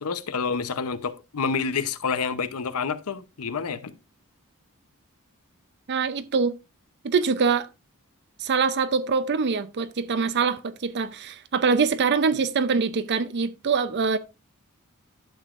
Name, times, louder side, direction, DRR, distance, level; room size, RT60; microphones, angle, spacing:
voice 1, 0.0-3.9, left 5 dB, 80° left, 0.7 m, -28 dB
voice 2, 5.9-6.6 7.0-7.7 8.4-14.2, right 5 dB, 50° right, 0.6 m, -24 dB
11.5 x 7.1 x 2.5 m
head